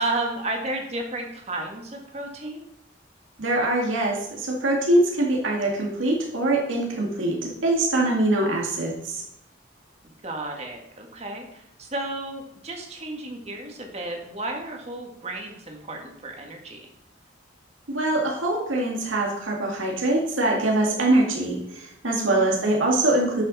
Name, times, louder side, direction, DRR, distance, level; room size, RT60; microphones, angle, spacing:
voice 1, 0.0-2.6 10.2-16.9 22.2-22.5, right 2 dB, 35° right, 2 dB, 1.8 m, -32 dB
voice 2, 3.4-9.2 17.9-23.4, right 2 dB, 85° right, -1 dB, 2.2 m, -23 dB
11.5 x 6.9 x 4.1 m, 0.80 s
head